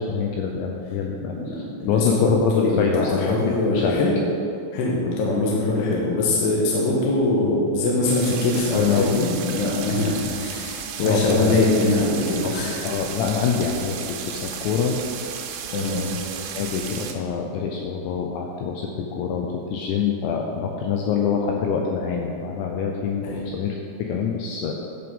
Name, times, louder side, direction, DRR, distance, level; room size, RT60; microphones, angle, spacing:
voice 1, 0.0-3.4 3.7-4.0 8.7-9.2 11.0-11.6 12.4-14.0 14.3-15.0 16.5-23.3 23.5-24.7, left 6 dB, 90° left, 1 dB, 2.5 m, -25 dB
voice 2, 1.2-4.1 4.7-12.8 15.7-16.1 23.2-23.4, left 2 dB, 75° left, -4 dB, 2.7 m, -23 dB
sound 1, 8.1-17.1, right 8 dB, 85° right, 3.2 m, -34 dB
11.0 x 5.9 x 5.4 m, 2.7 s
omnidirectional pair, 6.0 m